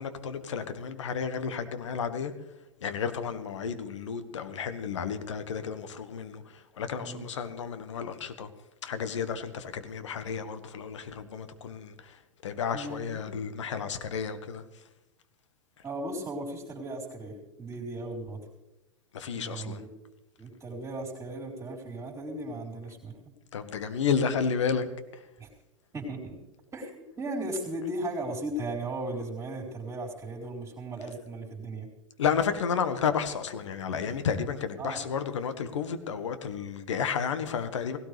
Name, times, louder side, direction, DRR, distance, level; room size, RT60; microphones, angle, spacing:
voice 1, 0.0-2.3 2.8-8.5 8.8-14.6 19.1-19.8 23.5-24.9 25.1-25.2 32.2-38.0, left 6 dB, 65° left, 1.7 m, -32 dB
voice 2, 12.7-13.3 15.8-18.4 19.3-19.9 20.4-23.3 25.4-25.5 25.9-26.4 26.7-31.9 34.8-35.0, right 1 dB, 20° right, 4.2 m, -36 dB
18.5 x 17.0 x 3.4 m
figure-of-eight pair, 95°, 16 cm